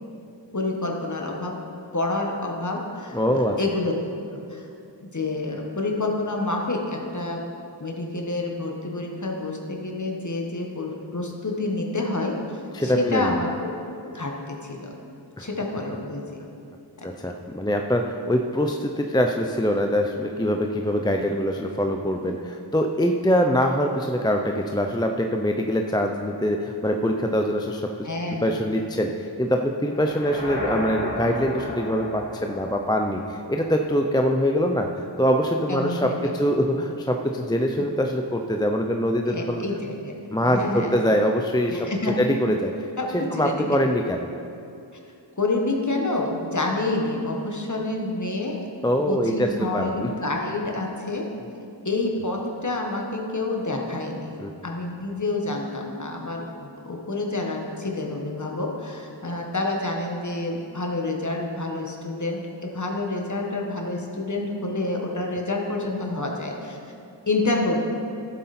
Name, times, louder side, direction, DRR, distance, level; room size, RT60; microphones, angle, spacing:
voice 1, 0.5-1.6 1.9-4.0 4.3-4.6 5.0-7.4 7.8-12.4 12.8-13.7 14.1-14.9 15.4-16.4 17.0-17.1 28.0-28.6 35.7-36.4 37.8-37.9 39.3-40.2 40.4-40.9 41.7-42.2 43.0-43.7 45.4-48.7 49.1-51.3 51.8-54.4 54.6-66.8 67.3-67.8, left 2 dB, 40° left, 0 dB, 1.5 m, -28 dB
voice 2, 3.1-3.6 12.7-13.4 15.4-15.5 17.0-28.1 28.4-39.6 40.3-41.9 42.2-42.7 43.1-44.3 48.8-50.1 54.4-54.5, equal, 10° left, 3 dB, 0.5 m, -24 dB
sound 1, 29.9-34.0, equal, 60° left, 2.2 m, -33 dB
12.5 x 7.8 x 4.3 m, 2.5 s
wide cardioid pair, 50°, 45 cm